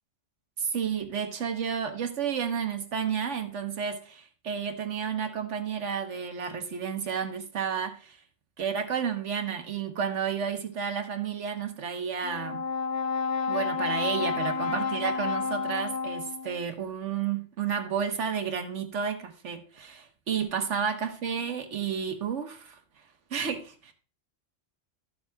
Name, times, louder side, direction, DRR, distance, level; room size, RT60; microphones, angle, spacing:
voice 1, 0.6-8.2 8.6-12.6 13.5-22.8 23.3-23.9, right 7 dB, 80° right, 6 dB, 1.4 m, -31 dB
Brass instrument, 12.2-16.6, left 5 dB, 65° left, 0.9 m, -30 dB
13.0 x 7.1 x 2.3 m, 0.36 s
omnidirectional pair, 1.2 m